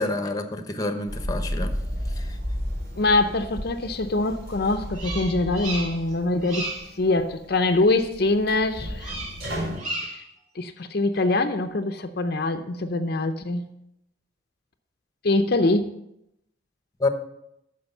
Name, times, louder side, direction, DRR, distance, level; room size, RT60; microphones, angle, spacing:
voice 1, 0.0-1.8 2.2-2.4 17.0-17.1, left 2 dB, 20° left, 8 dB, 0.9 m, -28 dB
sound 1, 1.1-9.8, equal, 60° right, 4.6 m, -33 dB
voice 2, 3.0-6.7 7.0-9.2 10.0-10.1 10.6-13.7 15.2-15.8, left 2 dB, 55° left, 7 dB, 0.6 m, -24 dB
Bird vocalization bird call bird song, 4.9-6.1 6.4-6.9 9.0-9.4 9.7-10.3, right 2 dB, 40° right, 2.9 m, -33 dB
9.7 x 6.3 x 7.0 m, 0.81 s
head